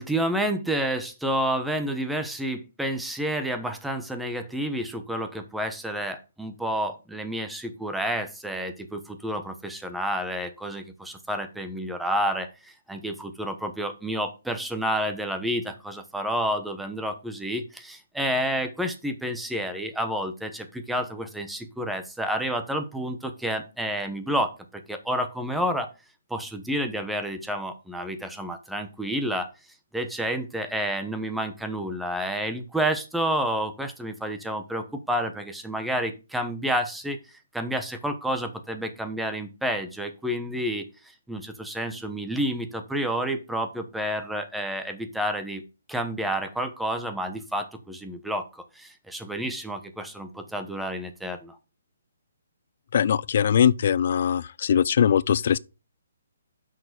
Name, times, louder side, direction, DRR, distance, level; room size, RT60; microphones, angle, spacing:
voice 1, 0.0-25.9 26.3-29.5 29.9-37.2 37.5-40.8 41.3-45.6 45.9-51.6, equal, 5° right, 1.0 m, -30 dB
voice 2, 52.9-55.6, left 8 dB, 55° left, 0.4 m, -21 dB
6.2 x 4.7 x 6.7 m
hypercardioid pair, 145°, 0 cm